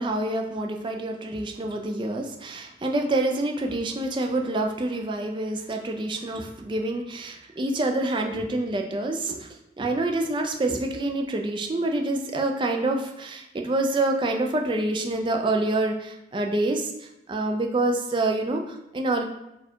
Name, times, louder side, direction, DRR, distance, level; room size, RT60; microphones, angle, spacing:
voice 1, 0.0-9.5 9.8-19.2, right 2 dB, 25° right, 3 dB, 0.4 m, -27 dB
4.5 x 2.3 x 4.4 m, 0.86 s
head